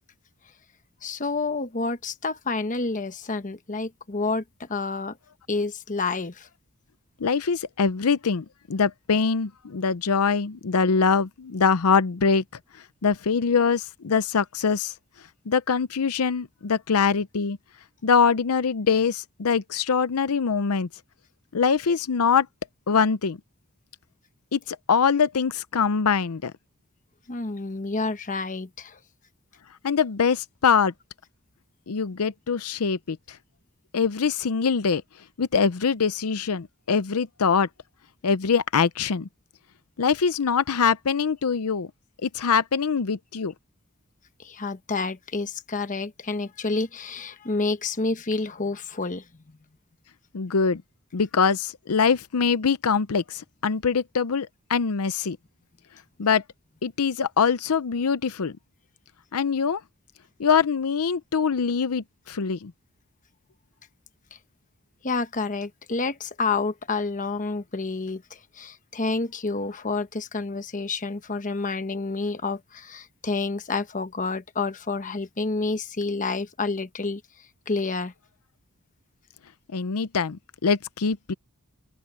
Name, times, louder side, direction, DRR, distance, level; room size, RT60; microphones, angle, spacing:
voice 1, 1.0-5.2 5.5-6.5 27.3-29.0 44.4-49.3 65.0-78.1, left 3 dB, 35° left, 1.1 m, -29 dB
voice 2, 7.2-12.4 13.0-14.9 15.5-17.6 18.0-20.9 21.5-22.5 22.9-23.4 24.5-26.5 29.8-30.9 31.9-33.4 33.9-35.0 35.4-37.7 38.2-39.3 40.0-41.9 42.2-43.5 50.3-50.8 51.1-55.4 56.2-56.4 56.8-58.5 59.3-59.8 60.4-62.7 79.7-81.3, left 5 dB, 80° left, 0.6 m, -23 dB
open air
head